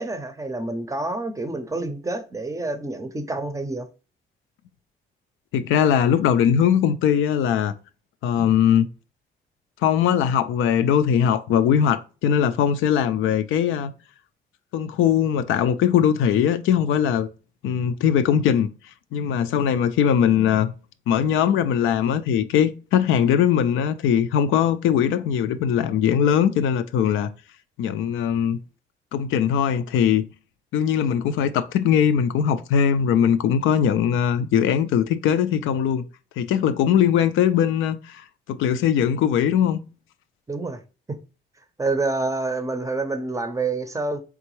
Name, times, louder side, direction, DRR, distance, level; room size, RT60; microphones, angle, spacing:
voice 1, 0.0-3.9 40.5-40.8 41.1-41.2 41.8-44.2, right 3 dB, 15° right, 0.5 m, -28 dB
voice 2, 5.5-7.7 8.2-8.9 9.8-13.9 14.7-17.3 17.6-18.7 19.1-20.7 21.1-27.3 27.8-28.6 29.1-30.2 30.7-36.0 36.4-39.8, left 8 dB, 85° left, 0.4 m, -20 dB
3.8 x 3.4 x 3.0 m
cardioid pair, 90°, 20 cm